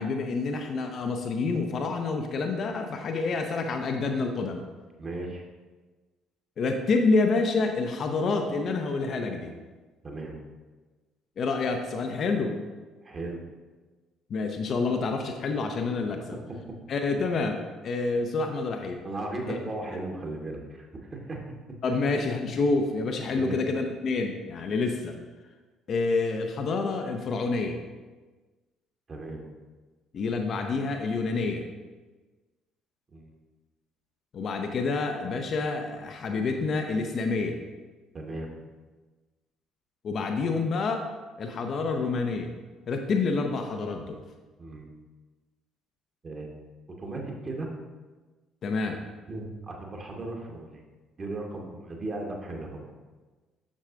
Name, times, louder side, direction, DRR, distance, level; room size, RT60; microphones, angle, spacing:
voice 1, 0.0-4.6 6.6-9.5 11.4-12.6 14.3-16.4 16.9-17.6 17.8-19.0 21.8-25.2 25.9-27.8 30.1-31.6 34.3-37.6 40.0-41.1 41.4-42.5 42.9-44.2 48.6-49.0, left 3 dB, 45° left, 5 dB, 0.5 m, -28 dB
voice 2, 5.0-5.4 10.0-10.3 13.0-13.4 19.0-21.4 23.3-23.6 29.1-29.4 33.1-33.3 38.1-38.5 44.6-44.9 46.2-46.6 47.0-47.7 49.3-50.8 51.2-52.9, right 2 dB, 35° right, 1 dB, 1.2 m, -36 dB
7.4 x 6.4 x 2.5 m, 1.3 s
figure-of-eight pair, 50°, 0 cm